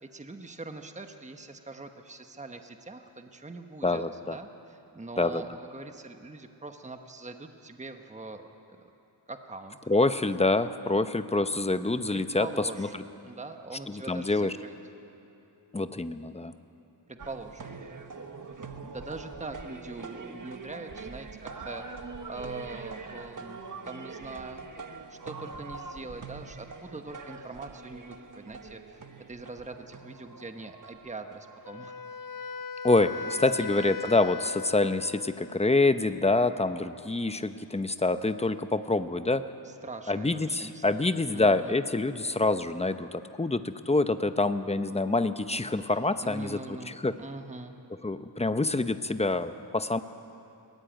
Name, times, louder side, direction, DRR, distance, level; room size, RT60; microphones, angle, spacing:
voice 1, 0.0-8.4 9.3-9.8 12.1-14.7 17.1-17.8 18.8-21.8 22.3-24.7 25.1-29.0 29.3-32.2 33.1-33.3 33.6-33.9 39.6-41.1 41.3-41.8 46.2-47.7, right 3 dB, 15° right, 6 dB, 1.1 m, -43 dB
voice 2, 3.8-4.4 5.2-5.4 9.9-12.9 13.9-14.5 15.7-16.5 32.8-39.4 40.1-46.6 46.9-47.1 48.0-50.0, left 2 dB, 15° left, 10 dB, 0.7 m, -26 dB
sound 1, 17.2-31.7, right 4 dB, 45° right, 1.4 m, -43 dB
Wind instrument woodwind instrument, 31.6-35.7, left 5 dB, 50° left, 0.8 m, -38 dB
22.0 x 18.0 x 9.2 m, 2.9 s
wide cardioid pair, 115°, 45 cm